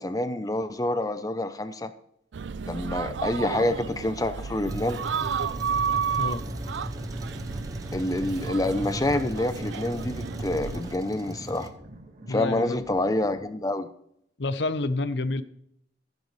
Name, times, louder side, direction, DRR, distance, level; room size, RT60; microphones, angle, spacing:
voice 1, 0.0-1.9 2.6-5.0 7.9-11.7 12.3-13.9, left 1 dB, 20° left, 10 dB, 0.6 m, -27 dB
sound 1, 2.3-11.0, right 6 dB, 70° right, 0.4 m, -32 dB
Truck, 4.7-11.7, right 1 dB, 20° right, 0.9 m, -37 dB
sound 2, 4.7-13.4, right 1 dB, 45° right, 1.7 m, -44 dB
voice 2, 12.3-12.8 14.4-15.4, left 2 dB, 65° left, 13 dB, 0.7 m, -28 dB
14.5 x 10.5 x 3.2 m, 0.72 s
head